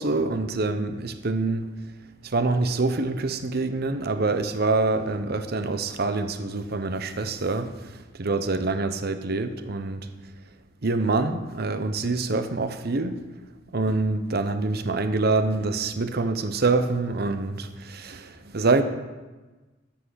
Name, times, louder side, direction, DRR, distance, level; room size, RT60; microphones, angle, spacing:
voice 1, 0.0-1.7 2.2-10.1 10.8-13.2 13.7-18.8, right 3 dB, 55° right, 9 dB, 0.8 m, -26 dB
13.0 x 6.0 x 6.4 m, 1.2 s
head